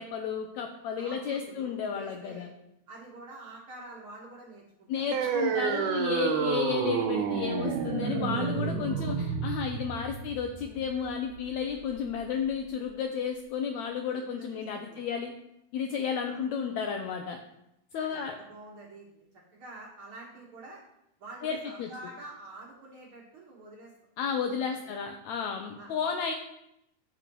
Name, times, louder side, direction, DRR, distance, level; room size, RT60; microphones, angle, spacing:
voice 1, 0.0-2.5 4.9-15.3 15.7-17.4 17.9-18.3 21.4-21.9 24.2-26.3, left 7 dB, 80° left, 4 dB, 1.6 m, -32 dB
voice 2, 0.9-2.5 2.9-5.1 5.7-5.9 14.1-15.2 16.2-16.4 18.0-19.3 19.5-20.8 21.2-23.9 24.6-24.9 25.8-25.9, right 2 dB, 55° right, -3 dB, 1.6 m, -47 dB
sound 1, 5.1-12.1, right 6 dB, 75° right, 2.2 m, -30 dB
15.0 x 5.2 x 3.0 m, 0.83 s
omnidirectional pair, 3.8 m